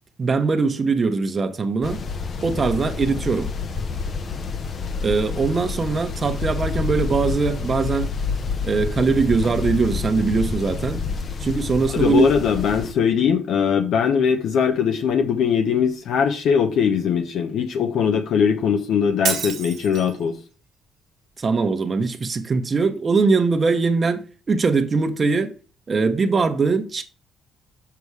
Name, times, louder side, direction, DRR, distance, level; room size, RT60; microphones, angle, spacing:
voice 1, 0.2-2.0 2.4-3.5 5.0-8.1 8.6-11.0 11.4-12.3 21.4-25.5 25.9-27.0, right 4 dB, 40° right, 1.1 m, -21 dB
sound 1, 1.8-12.9, left 5 dB, 50° left, 0.9 m, -28 dB
voice 2, 11.9-20.4, left 7 dB, 75° left, 0.9 m, -20 dB
Shatter, 19.2-20.2, right 8 dB, 70° right, 1.4 m, -27 dB
7.1 x 5.3 x 4.8 m
cardioid pair, 90°, 0 cm